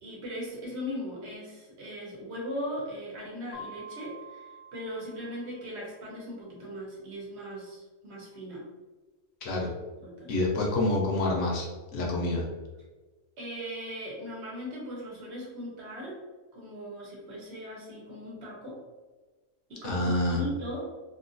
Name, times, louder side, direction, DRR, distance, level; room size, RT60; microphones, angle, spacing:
voice 1, 0.0-8.6 10.0-10.4 13.4-16.2 16.5-18.8 19.7-20.9, equal, 50° right, -3 dB, 1.1 m, -39 dB
Mallet percussion, 3.5-6.1, right 1 dB, 45° left, 0.4 m, -47 dB
voice 2, 9.4-9.7 10.3-12.5 19.8-20.4, left 2 dB, 60° left, -1 dB, 0.9 m, -27 dB
3.0 x 2.6 x 2.5 m, 1.3 s
omnidirectional pair, 1.6 m